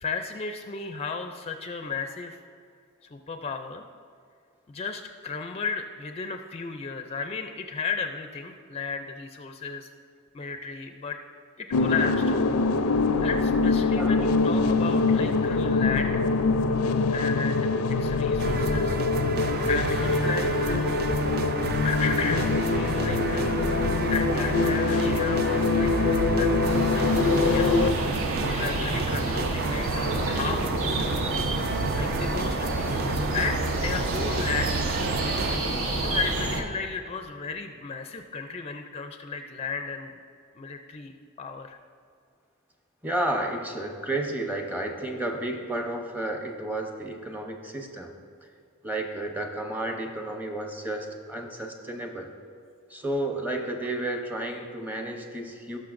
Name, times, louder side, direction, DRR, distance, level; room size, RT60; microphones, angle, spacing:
voice 1, 0.0-2.4 3.1-3.8 4.7-9.9 10.3-11.2 11.6-12.4 13.2-16.3 17.1-19.0 19.7-21.0 21.8-23.8 24.1-31.2 32.0-35.1 36.0-40.1 40.5-41.8, left 5 dB, 30° left, 5 dB, 0.4 m, -34 dB
sound 1, 11.7-27.9, left 3 dB, 90° left, 0.5 m, -24 dB
sound 2, 18.4-35.6, right 4 dB, 45° right, 0.4 m, -31 dB
sound 3, 26.6-36.6, right 2 dB, 70° right, 1.0 m, -29 dB
voice 2, 32.0-32.3 43.0-48.1 48.8-52.3 52.9-55.8, right 1 dB, 10° right, 3 dB, 0.8 m, -32 dB
18.5 x 6.4 x 2.6 m, 2.3 s
head